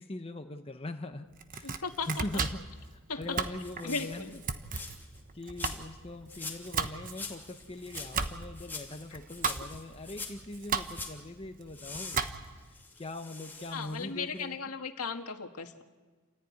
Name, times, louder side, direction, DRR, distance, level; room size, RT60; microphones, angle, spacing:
voice 1, 0.0-4.4 5.3-12.2 12.7-14.6, left 2 dB, 25° left, 6 dB, 0.9 m, -42 dB
Domestic sounds home sounds, 1.3-12.7, right 5 dB, 40° right, 1.1 m, -37 dB
voice 2, 1.6-2.2 3.1-3.4 3.8-4.4 13.7-15.8, left 4 dB, 90° left, 5 dB, 1.7 m, -36 dB
sound 1, 3.4-5.2 5.6-6.0 6.3-6.8 7.0-11.2 11.7-14.1 14.4-14.5, left 4 dB, 10° left, 2.8 m, -44 dB
29.5 x 14.5 x 9.6 m, 1.4 s
head